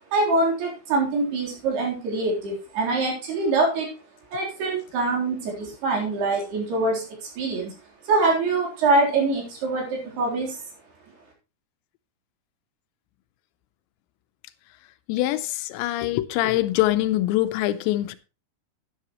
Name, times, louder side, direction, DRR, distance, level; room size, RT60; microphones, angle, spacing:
voice 1, 0.1-3.9 4.3-7.1 7.4-7.7 8.1-10.6, right 3 dB, 65° right, 5.5 m, -24 dB
voice 2, 15.1-18.2, left 15 dB, 85° left, 3.0 m, -24 dB
12.5 x 10.0 x 3.0 m
omnidirectional pair, 5.0 m